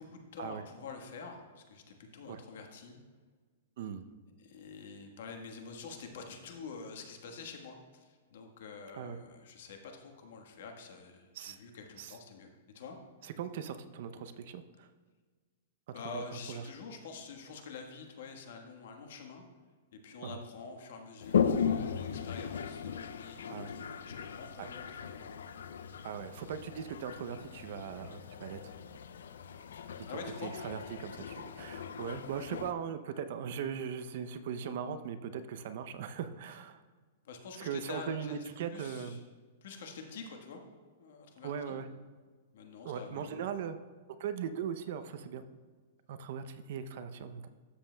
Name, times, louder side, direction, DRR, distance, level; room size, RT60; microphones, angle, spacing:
voice 1, 0.0-3.0 4.4-12.5 12.7-13.0 15.9-19.4 19.9-25.4 30.1-30.5 37.2-39.2 39.6-40.6 41.0-41.8 42.5-43.5, left 4 dB, 65° left, 4 dB, 1.3 m, -47 dB
voice 2, 3.8-4.1 8.9-9.2 11.3-11.6 12.0-12.1 13.2-14.9 16.1-16.6 20.2-20.4 23.5-23.7 24.6-24.7 26.0-28.7 30.4-36.8 37.6-39.2 41.4-41.9 42.8-43.8 44.2-45.4 46.1-47.5, right 7 dB, 55° right, 10 dB, 0.5 m, -39 dB
Toilet flush, 21.2-32.7, left 7 dB, 90° left, 0.4 m, -37 dB
13.0 x 7.3 x 2.2 m, 1.5 s
hypercardioid pair, 155°, 0 cm